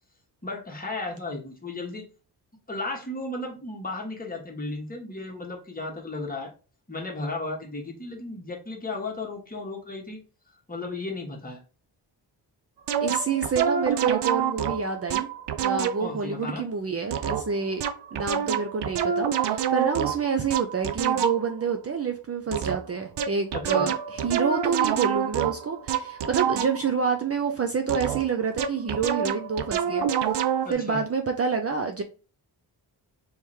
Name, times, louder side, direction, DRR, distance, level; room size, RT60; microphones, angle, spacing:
voice 1, 0.4-2.0 2.7-6.5 6.9-10.2 10.7-11.6 16.0-16.7 23.5-23.9 30.6-31.0, left 2 dB, 20° left, 0 dB, 1.5 m, -34 dB
sound 1, 12.9-16.1 17.1-21.6 22.5-22.9 23.2-27.0 27.9-30.7, right 8 dB, 75° right, 0.6 m, -27 dB
voice 2, 13.0-15.3 15.6-17.8 18.1-30.1 30.4-32.0, right 5 dB, 35° right, 5 dB, 0.6 m, -28 dB
3.5 x 3.2 x 4.4 m, 0.34 s
cardioid pair, 95°, 41 cm